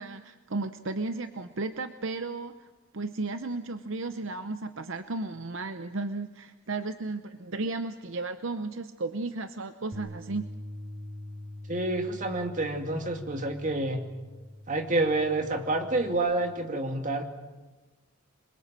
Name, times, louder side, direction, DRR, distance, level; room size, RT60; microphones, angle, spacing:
voice 1, 0.0-2.7 2.9-10.5, right 3 dB, 60° right, 10 dB, 0.8 m, -34 dB
Bass guitar, 9.9-16.2, left 1 dB, 15° right, 5.7 m, -44 dB
voice 2, 11.7-14.0 14.7-17.2, right 2 dB, 35° right, 5 dB, 2.3 m, -28 dB
26.0 x 22.5 x 7.5 m, 1.2 s
head